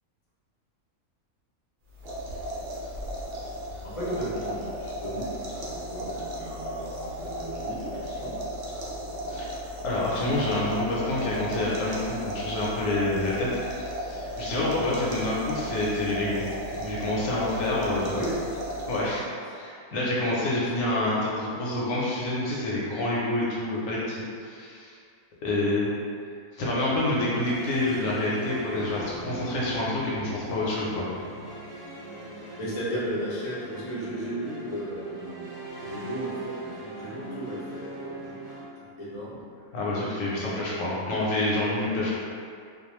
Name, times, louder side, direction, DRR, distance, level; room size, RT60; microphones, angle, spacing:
sound 1, 1.9-19.3, equal, 65° right, 0.6 m, -35 dB
voice 1, 3.8-8.4 14.7-14.8 18.0-18.5 32.3-35.5 35.8-38.5 38.8-39.4 40.5-40.9, right 1 dB, 40° left, -9 dB, 0.5 m, -35 dB
voice 2, 9.8-18.1 18.9-19.3 19.5-25.0 25.4-25.9 26.5-31.1 39.7-42.2, left 1 dB, 70° left, -6 dB, 0.9 m, -28 dB
sound 2, 26.7-38.6, equal, 20° right, 0.9 m, -40 dB
2.3 x 2.2 x 3.0 m, 2.3 s
omnidirectional pair, 1.5 m